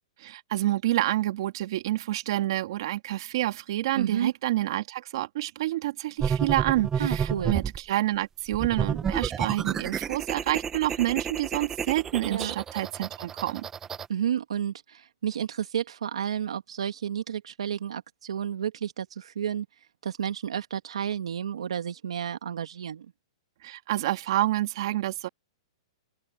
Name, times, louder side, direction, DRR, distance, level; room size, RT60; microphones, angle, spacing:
voice 1, 0.2-13.7 23.6-25.3, right 15 dB, 55° right, 2.3 m, -28 dB
voice 2, 4.0-4.3 7.0-7.6 12.2-12.5 14.1-19.7 20.0-23.1, right 9 dB, 85° right, 2.1 m, -31 dB
sound 1, 6.2-7.8 8.5-14.1, right 7 dB, 15° right, 1.0 m, -30 dB
open air
hypercardioid pair, 155°, 3 cm